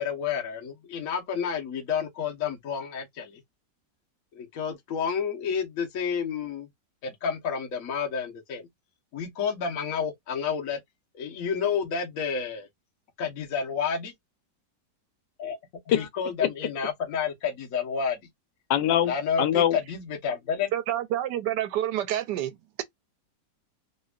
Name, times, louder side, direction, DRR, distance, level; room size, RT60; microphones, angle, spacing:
voice 1, 0.0-3.4 4.3-6.7 7.0-8.7 9.1-10.8 11.1-12.7 13.2-14.1 15.4-15.6 15.9-18.3 19.1-20.7, left 6 dB, 55° left, 1.4 m, -30 dB
voice 2, 18.7-19.1 19.4-19.8, left 10 dB, 90° left, 1.3 m, -22 dB
voice 3, 20.7-22.8, right 12 dB, 75° right, 1.1 m, -28 dB
4.0 x 2.7 x 2.4 m
omnidirectional pair, 1.9 m